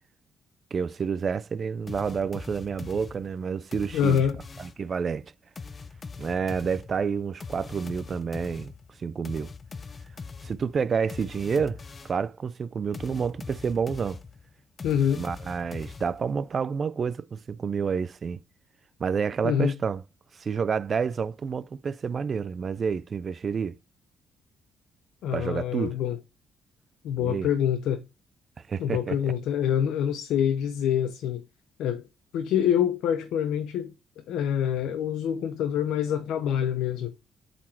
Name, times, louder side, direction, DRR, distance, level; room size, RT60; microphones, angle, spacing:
voice 1, 0.7-4.2 4.6-5.3 6.2-8.7 9.0-9.5 10.4-11.8 12.0-14.2 15.1-18.4 19.0-20.0 20.3-23.8 25.3-26.0 27.2-27.5 28.7-29.2, right 6 dB, 45° right, 0.4 m, -29 dB
sound 1, 1.9-4.9 5.6-12.3 12.9-16.4, left 4 dB, 35° left, 0.6 m, -42 dB
voice 2, 3.9-4.4 14.8-15.2 19.4-19.8 25.2-26.2 27.0-28.0 28.8-31.4 31.8-32.0 32.3-33.9 34.3-37.1, left 9 dB, 85° left, 0.7 m, -26 dB
7.3 x 4.2 x 4.3 m
cardioid pair, 90°, 0 cm